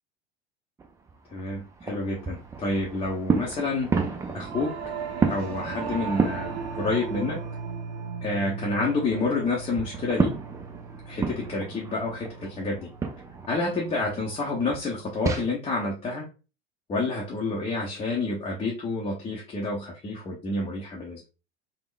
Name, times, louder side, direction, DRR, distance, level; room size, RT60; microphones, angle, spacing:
sound 1, 0.8-7.6 8.0-15.5, right 5 dB, 10° right, 0.4 m, -32 dB
voice 1, 1.3-3.9 4.3-4.7 5.3-7.4 8.2-10.3 11.1-12.9 13.5-16.3 16.9-21.3, left 3 dB, 15° left, -3 dB, 0.7 m, -29 dB
Singing / Musical instrument, 4.3-13.9, right 5 dB, 80° right, 0.6 m, -37 dB
3.5 x 2.1 x 2.5 m, 0.32 s
figure-of-eight pair, 80°, 32 cm